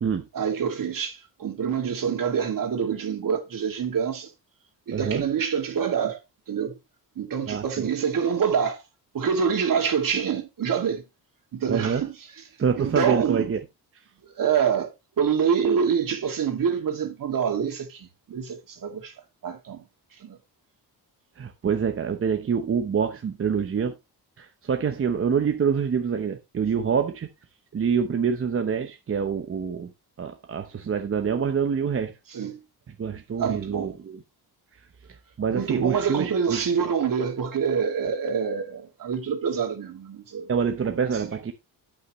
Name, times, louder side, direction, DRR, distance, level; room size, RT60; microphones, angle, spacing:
voice 1, 0.3-4.3 4.9-6.2 6.5-6.7 7.2-8.8 9.1-11.0 11.5-12.3 12.7-13.5 14.2-14.9 15.2-19.1 19.4-19.8 20.2-20.4 32.3-32.6 33.4-34.0 35.5-40.5 40.9-41.3, right 7 dB, 60° right, 2.4 m, -26 dB
voice 2, 4.9-5.2 7.5-7.9 11.7-12.0 12.6-13.6 21.4-23.9 24.4-27.3 27.7-29.9 30.2-32.1 33.0-34.2 35.4-36.6 40.5-41.5, right 6 dB, 35° right, 0.9 m, -26 dB
8.6 x 8.4 x 3.1 m
wide cardioid pair, 140°, 38 cm